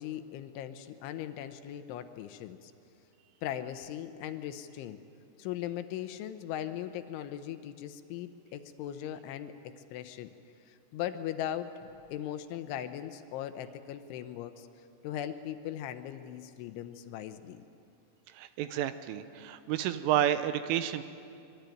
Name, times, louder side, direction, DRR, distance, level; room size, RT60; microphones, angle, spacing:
voice 1, 0.0-2.7 3.4-5.0 5.4-10.3 10.7-14.7 15.0-17.6, left 11 dB, 75° left, 9 dB, 3.2 m, -39 dB
voice 2, 18.4-21.0, right 11 dB, 80° right, 11 dB, 3.5 m, -30 dB
24.5 x 23.5 x 9.2 m, 2.5 s
omnidirectional pair, 5.8 m